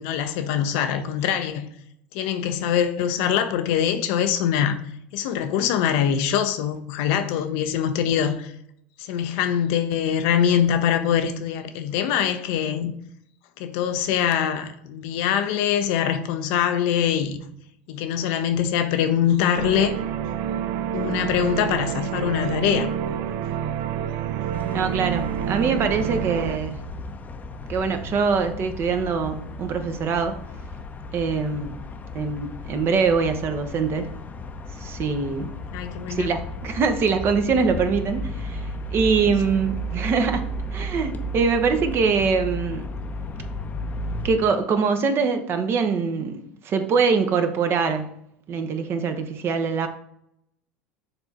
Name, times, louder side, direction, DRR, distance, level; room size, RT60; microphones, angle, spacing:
voice 1, 0.0-1.7 2.1-4.8 5.1-8.5 9.0-12.9 13.6-17.4 17.9-20.0 20.9-22.9 35.7-36.3 39.2-39.3, left 9 dB, 65° left, 0.6 m, -23 dB
sound 1, 19.6-26.6, right 9 dB, 55° right, 0.4 m, -28 dB
sound 2, 24.5-44.3, left 1 dB, 25° left, 0.7 m, -34 dB
voice 2, 24.7-26.8 27.7-30.3 31.1-31.8 32.1-34.1 34.8-35.5 36.1-38.6 38.9-40.4 40.7-42.9 44.2-48.1 48.5-49.9, right 5 dB, 40° right, 0.9 m, -23 dB
6.9 x 3.5 x 4.2 m
hypercardioid pair, 80°, 6 cm